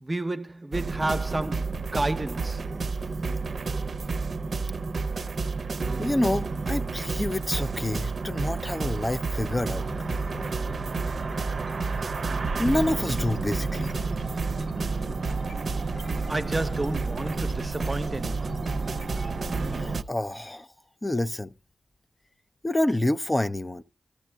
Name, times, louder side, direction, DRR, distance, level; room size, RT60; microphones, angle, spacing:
voice 1, 0.0-2.6 16.3-18.6, right 2 dB, 30° right, 0.7 m, -31 dB
sound 1, 0.7-20.0, right 4 dB, 70° right, 0.6 m, -30 dB
voice 2, 6.0-9.8 12.6-13.9 19.7-20.7 21.0-21.5 22.6-23.8, left 1 dB, 25° left, 0.5 m, -27 dB
sound 2, 9.5-20.0, left 2 dB, 50° left, 0.7 m, -41 dB
13.5 x 13.5 x 2.2 m
cardioid pair, 50°, 0 cm